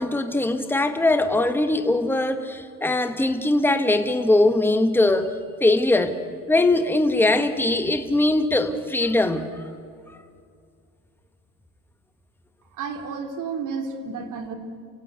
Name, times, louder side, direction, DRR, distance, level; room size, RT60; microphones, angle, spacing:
voice 1, 0.0-5.3 5.6-6.2 6.5-9.6, left 2 dB, 5° left, 8 dB, 1.5 m, -21 dB
voice 2, 12.7-14.5, right 5 dB, 55° right, 6 dB, 3.1 m, -31 dB
28.5 x 16.0 x 8.2 m, 2.2 s
supercardioid pair, 95°, 36 cm